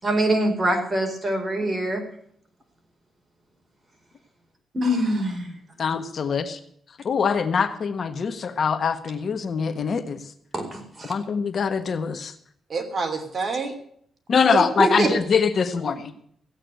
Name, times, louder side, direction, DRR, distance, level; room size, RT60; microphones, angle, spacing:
voice 1, 0.0-2.0 4.7-5.5 10.5-11.1, equal, 25° right, 3 dB, 4.7 m, -24 dB
voice 2, 4.8-5.2 12.7-13.7 14.5-15.1, right 3 dB, 40° right, 5 dB, 2.9 m, -25 dB
voice 3, 5.8-6.6 7.0-10.2 11.1-12.3 14.3-16.2, left 6 dB, 50° left, 9 dB, 1.4 m, -23 dB
16.0 x 8.8 x 7.8 m, 0.64 s
cardioid pair, 105°, 0 cm